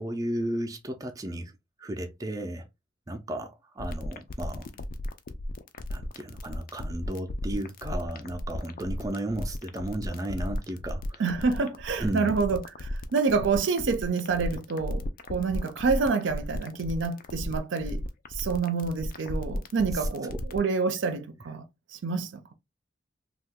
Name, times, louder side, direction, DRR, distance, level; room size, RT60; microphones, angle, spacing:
voice 1, 0.0-1.5 1.8-2.7 3.1-4.7 5.9-11.2 12.0-12.3, right 1 dB, 20° right, 0.4 m, -34 dB
sound 1, 3.8-20.6, left 1 dB, 45° left, 0.4 m, -35 dB
voice 2, 11.2-15.0 15.3-18.0 18.3-21.6 21.9-22.5, right 4 dB, 75° right, 0.5 m, -28 dB
2.7 x 2.3 x 3.5 m
head